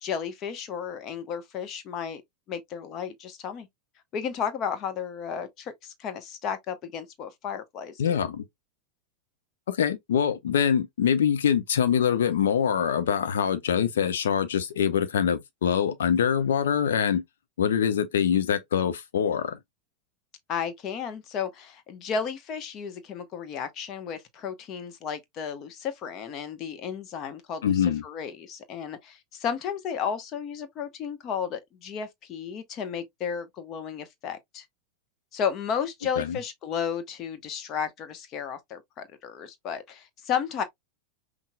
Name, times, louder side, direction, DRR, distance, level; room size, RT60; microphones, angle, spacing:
voice 1, 0.0-2.2 2.5-3.7 4.1-8.3 20.5-34.7 35.3-40.6, left 7 dB, 35° left, 1.1 m, -33 dB
voice 2, 8.0-8.5 9.7-17.2 17.6-19.6 27.6-28.0 36.2-36.4, left 8 dB, 60° left, 0.8 m, -24 dB
5.6 x 3.3 x 2.3 m
figure-of-eight pair, 90°, 0 cm